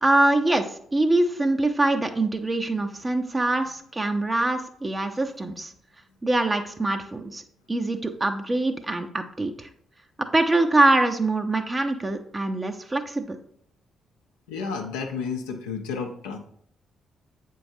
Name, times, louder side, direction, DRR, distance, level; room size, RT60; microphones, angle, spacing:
voice 1, 0.0-5.7 6.2-7.4 7.7-9.7 10.3-13.4, right 2 dB, 25° right, 6 dB, 0.6 m, -24 dB
voice 2, 14.5-16.4, left 5 dB, 85° left, 2 dB, 0.5 m, -31 dB
7.7 x 4.6 x 2.7 m, 0.66 s
hypercardioid pair, 40°, 0 cm